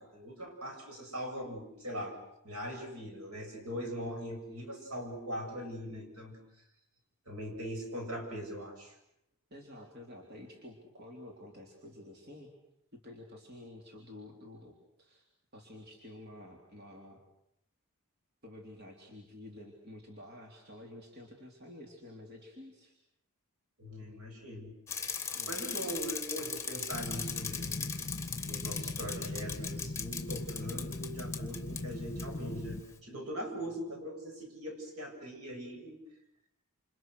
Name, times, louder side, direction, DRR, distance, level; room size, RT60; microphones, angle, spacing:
voice 1, 0.0-2.2 2.4-6.4 7.3-9.0 23.8-24.7 25.5-27.9 28.5-36.0, equal, 75° right, 2 dB, 7.9 m, -41 dB
voice 2, 9.5-12.5 12.9-14.7 15.0-15.2 15.5-17.2 18.4-22.9 25.3-25.6, left 1 dB, 45° right, 1 dB, 3.7 m, -50 dB
Bicycle, 24.9-31.8 32.2-32.3, left 6 dB, 15° left, 2.5 m, -39 dB
sound 1, 26.9-32.8, left 2 dB, 35° left, 1.5 m, -40 dB
29.0 x 28.0 x 6.5 m, 0.79 s
head